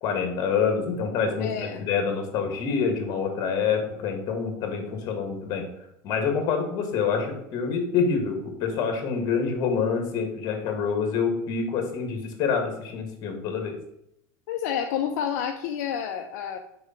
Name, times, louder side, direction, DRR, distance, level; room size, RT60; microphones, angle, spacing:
voice 1, 0.0-5.7 6.0-13.8, left 6 dB, 45° left, 4 dB, 1.8 m, -26 dB
voice 2, 1.4-1.8 14.5-16.6, left 8 dB, 75° left, 4 dB, 0.6 m, -29 dB
4.9 x 4.6 x 5.8 m, 0.79 s
supercardioid pair, 140°, 9 cm